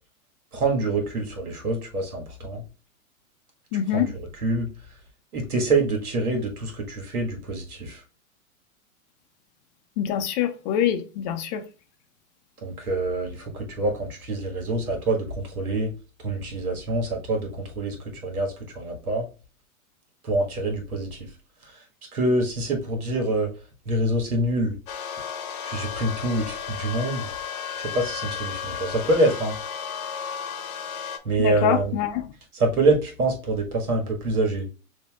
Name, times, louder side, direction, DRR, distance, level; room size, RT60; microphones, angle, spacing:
voice 1, 0.5-2.6 3.9-4.1 4.4-4.7 5.3-8.0 12.6-15.9 16.2-18.0 18.2-19.3 20.2-21.2 22.1-23.5 23.8-24.8 25.6-27.3 27.8-29.5 31.2-32.0 32.5-34.7, right 2 dB, 85° right, 1.6 m, -25 dB
voice 2, 3.7-4.1 10.0-11.6 31.4-32.3, left 10 dB, 30° left, 0.5 m, -25 dB
sound 1, 24.9-31.2, left 8 dB, 75° left, 0.9 m, -33 dB
6.7 x 2.7 x 2.3 m
hypercardioid pair, 120°, 43 cm